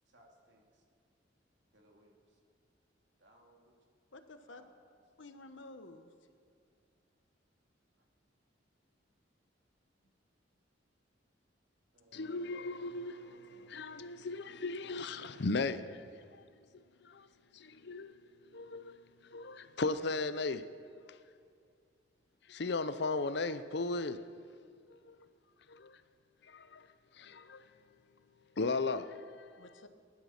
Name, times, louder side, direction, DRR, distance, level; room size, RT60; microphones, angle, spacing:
voice 1, 0.1-0.8 1.7-2.4 3.2-3.8 4.4-5.3 8.0-8.1 11.9-14.1, right 1 dB, 75° right, 2.7 m, -64 dB
voice 2, 4.1-4.6 5.2-6.1 29.6-29.9, left 2 dB, 85° left, 1.1 m, -51 dB
voice 3, 12.1-16.5 16.7-17.3 17.5-18.2 18.5-20.7 21.1-21.2 22.5-24.3 24.9-25.1 25.7-26.0 26.4-26.9 27.1-27.7 28.6-29.6, left 3 dB, 60° left, 0.7 m, -37 dB
20.5 x 11.5 x 5.9 m
head